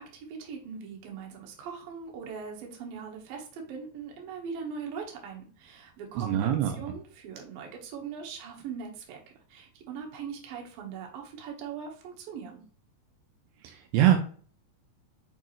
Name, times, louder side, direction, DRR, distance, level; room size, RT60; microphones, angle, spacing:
voice 1, 0.0-9.2 9.5-12.6, right 6 dB, 70° right, 1 dB, 2.2 m, -40 dB
voice 2, 6.2-6.7 13.6-14.2, right 11 dB, 90° right, 4 dB, 2.4 m, -23 dB
6.6 x 4.6 x 3.1 m, 0.43 s
omnidirectional pair, 5.7 m